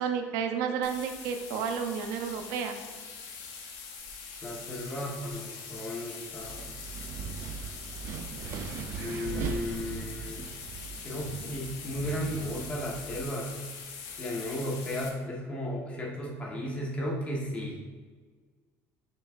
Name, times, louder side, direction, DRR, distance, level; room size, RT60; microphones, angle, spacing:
voice 1, 0.0-2.8, right 7 dB, 90° right, 5 dB, 0.7 m, -31 dB
sound 1, 0.8-15.1, left 5 dB, 85° left, 1.1 m, -43 dB
voice 2, 4.4-6.7 9.0-10.5 11.0-13.5 14.2-17.8, left 1 dB, 20° left, -2 dB, 1.2 m, -35 dB
Wind, 6.4-13.3, right 6 dB, 45° right, 0.4 m, -39 dB
6.4 x 6.1 x 2.5 m, 1.5 s
cardioid pair, 165°, 6 cm